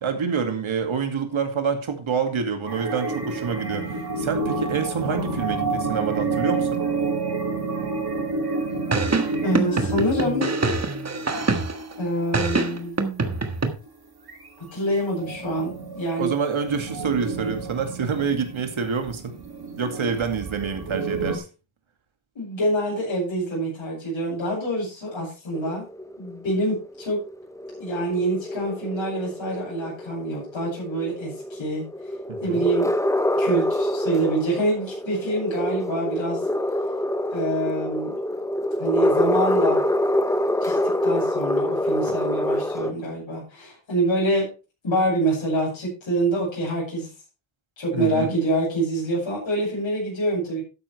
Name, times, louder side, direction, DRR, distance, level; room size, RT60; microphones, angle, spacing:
voice 1, 0.0-6.8 16.2-19.3 19.8-21.5 32.3-32.6 47.9-48.4, right 6 dB, 80° right, 2.4 m, -27 dB
sound 1, 2.7-13.3 13.9-14.0 14.3-14.5 14.9-21.4, right 3 dB, 50° right, 2.6 m, -29 dB
sound 2, 8.9-11.9 12.3-13.7, right 3 dB, 35° right, 1.6 m, -25 dB
voice 2, 9.4-10.5 12.0-12.9 14.6-16.3 22.3-25.8 26.2-27.2 27.8-31.8 32.4-32.9 33.4-36.4 37.3-38.1 38.8-39.8 40.6-40.8 41.0-44.5 44.8-47.1 47.8-50.6, right 1 dB, 70° left, 6.5 m, -26 dB
sound 3, 25.5-42.9, left 1 dB, 5° left, 0.6 m, -26 dB
12.5 x 9.8 x 3.3 m
wide cardioid pair, 130°, 48 cm